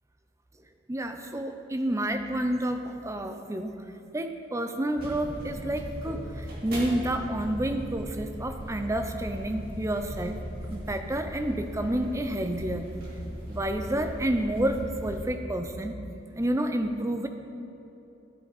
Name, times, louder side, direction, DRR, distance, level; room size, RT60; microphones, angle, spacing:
voice 1, 0.9-3.7 4.1-10.4 10.7-12.9 13.5-16.0 16.3-17.3, right 1 dB, 15° right, 6 dB, 0.6 m, -29 dB
sound 1, 5.0-15.2, equal, 50° right, 2.6 m, -38 dB
13.0 x 9.6 x 4.1 m, 2.8 s
head